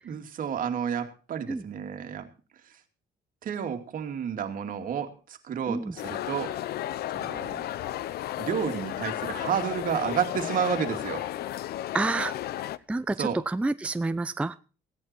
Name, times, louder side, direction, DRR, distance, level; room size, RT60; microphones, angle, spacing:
voice 1, 0.1-2.3 2.6-2.8 3.4-6.5 7.1-7.7 8.4-11.3 13.2-13.4, right 8 dB, 55° right, 6 dB, 2.5 m, -31 dB
sound 1, 6.0-12.8, left 13 dB, 70° left, 0.8 m, -33 dB
voice 2, 11.9-12.3 12.9-14.5, right 3 dB, 5° right, 12 dB, 0.6 m, -28 dB
16.5 x 11.0 x 4.4 m, 0.36 s
cardioid pair, 110°, 17 cm